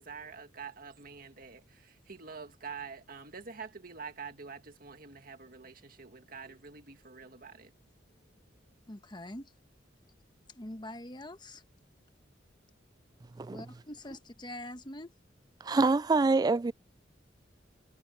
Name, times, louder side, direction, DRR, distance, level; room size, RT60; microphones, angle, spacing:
voice 1, 0.0-7.7, right 5 dB, 50° right, 2.0 m, -46 dB
voice 2, 8.9-9.5 10.5-11.6 13.5-15.1, left 1 dB, 25° left, 1.3 m, -44 dB
voice 3, 15.6-16.7, right 3 dB, 20° right, 0.3 m, -26 dB
head